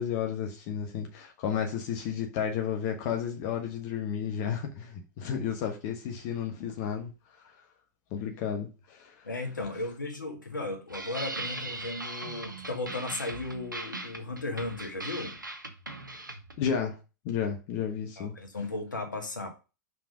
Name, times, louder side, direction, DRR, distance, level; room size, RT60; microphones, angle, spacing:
voice 1, 0.0-7.1 8.1-9.3 16.6-17.0 17.2-18.3, left 8 dB, 40° left, 1.2 m, -32 dB
voice 2, 9.2-15.4 18.2-19.5, left 2 dB, 80° left, 1.9 m, -35 dB
sound 1, 10.9-16.6, right 2 dB, 85° right, 1.2 m, -39 dB
5.6 x 4.7 x 5.2 m
figure-of-eight pair, 100°, 10 cm